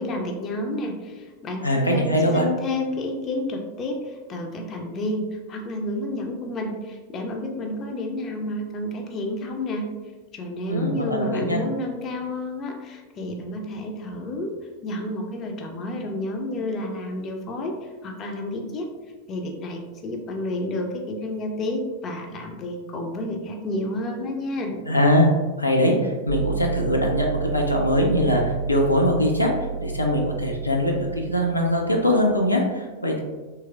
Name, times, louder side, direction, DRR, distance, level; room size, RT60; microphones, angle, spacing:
voice 1, 0.0-9.9 10.3-14.5 14.8-18.9 19.3-24.8, left 1 dB, 30° left, 3 dB, 0.5 m, -30 dB
voice 2, 1.6-2.4 10.7-11.6 24.8-25.3 25.6-29.5 29.8-33.2, left 1 dB, 85° left, 0 dB, 0.4 m, -22 dB
sound 1, 26.3-32.4, right 7 dB, 75° right, 0.3 m, -31 dB
3.2 x 2.9 x 2.3 m, 1.3 s
figure-of-eight pair, 90°, 0 cm